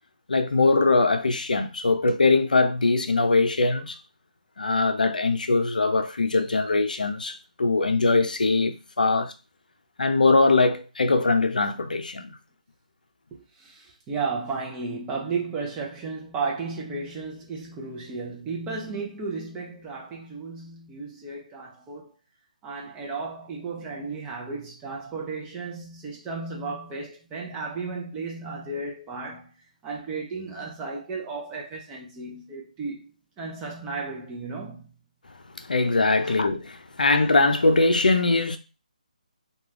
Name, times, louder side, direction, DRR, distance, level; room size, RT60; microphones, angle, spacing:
voice 1, 0.3-4.0 4.6-9.3 10.0-12.3 35.6-38.6, left 3 dB, 80° left, 0.4 m, -22 dB
voice 2, 13.3-22.1 22.6-29.5 29.8-34.9 36.2-36.4, right 4 dB, 15° right, 0.4 m, -34 dB
2.3 x 2.3 x 3.2 m
figure-of-eight pair, 150°, 4 cm